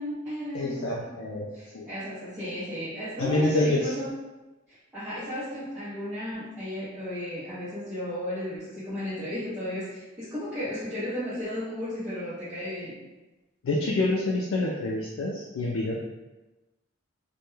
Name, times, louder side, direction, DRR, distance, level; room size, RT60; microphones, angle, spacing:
voice 1, 0.0-1.1 1.5-4.1 4.7-13.0, equal, 10° right, -14 dB, 0.6 m, -34 dB
voice 2, 0.5-1.5 1.7-1.9 3.2-3.9 13.6-16.0, left 2 dB, 75° left, -3 dB, 0.3 m, -27 dB
2.1 x 2.1 x 3.0 m, 1.1 s
head